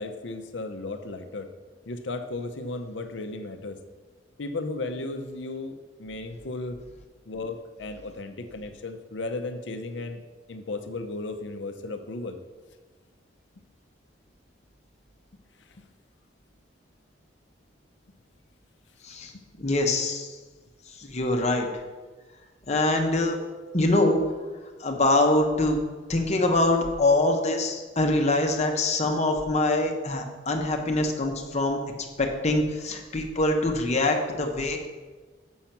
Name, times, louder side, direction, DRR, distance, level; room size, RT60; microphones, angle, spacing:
voice 1, 0.0-1.5 1.9-3.8 4.4-6.8 7.3-10.2 10.5-12.4 15.6-15.9 19.3-19.4, left 2 dB, 75° left, 8 dB, 0.7 m, -35 dB
voice 2, 19.6-20.3 21.0-21.7 22.7-23.4 23.7-24.2 24.8-25.8 26.1-31.8 32.2-34.8, left 2 dB, 40° left, 3 dB, 1.0 m, -24 dB
7.1 x 6.4 x 5.9 m, 1.3 s
head